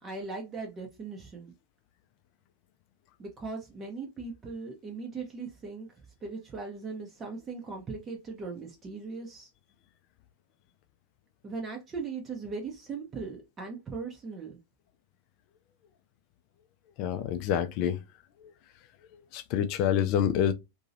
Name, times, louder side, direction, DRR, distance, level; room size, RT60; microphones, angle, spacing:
voice 1, 0.0-1.5 3.2-5.9 6.2-9.5 11.4-14.6, right 4 dB, 20° right, 0.7 m, -39 dB
voice 2, 17.0-18.0 19.3-20.5, left 9 dB, 40° left, 0.5 m, -27 dB
2.9 x 2.7 x 2.6 m
figure-of-eight pair, 90°, 0 cm